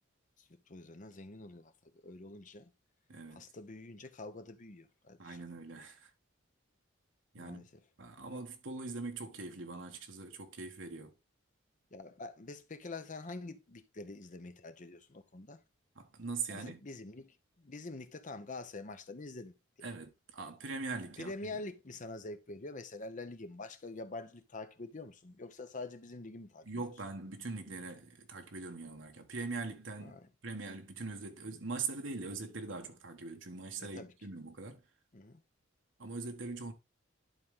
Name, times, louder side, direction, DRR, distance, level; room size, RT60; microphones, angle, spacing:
voice 1, 0.4-2.7 3.3-5.4 7.4-7.7 11.9-15.6 16.5-19.9 21.2-26.7 30.0-30.3 33.8-34.1 35.1-35.4, left 2 dB, 40° left, 0.8 m, -46 dB
voice 2, 3.1-3.4 5.2-6.1 7.3-7.6 8.0-11.1 15.9-16.8 19.8-21.6 26.6-30.2 30.4-34.8 36.0-36.7, right 3 dB, 65° right, 1.4 m, -42 dB
11.5 x 3.8 x 3.6 m
head